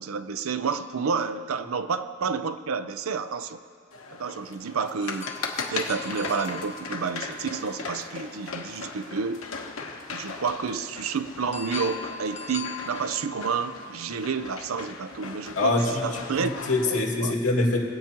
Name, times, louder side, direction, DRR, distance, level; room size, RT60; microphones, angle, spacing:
voice 1, 0.0-3.6 4.1-9.5 10.1-16.5 17.2-17.3, right 5 dB, 75° right, 11 dB, 0.5 m, -30 dB
sound 1, 0.7-2.4 5.0-8.9 11.5-15.0, left 5 dB, 35° left, 0.8 m, -42 dB
sound 2, 3.9-17.0, left 4 dB, 70° left, 1.1 m, -38 dB
voice 2, 15.6-16.0 16.4-17.8, left 2 dB, 90° left, -2 dB, 2.2 m, -24 dB
24.0 x 8.6 x 3.0 m, 2.3 s
head